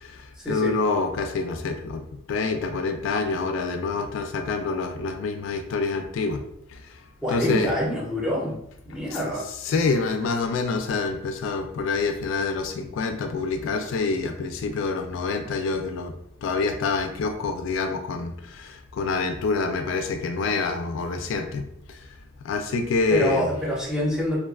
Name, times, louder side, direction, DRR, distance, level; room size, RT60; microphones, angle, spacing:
voice 1, 0.0-2.0 2.3-6.4 7.3-7.7 9.1-9.2 9.6-16.1 16.4-21.6 22.4-23.5, left 4 dB, 80° left, 6 dB, 0.3 m, -26 dB
voice 2, 7.2-8.6 8.9-9.4 23.1-24.4, equal, 5° right, -4 dB, 0.5 m, -26 dB
2.4 x 2.2 x 2.3 m, 0.73 s
head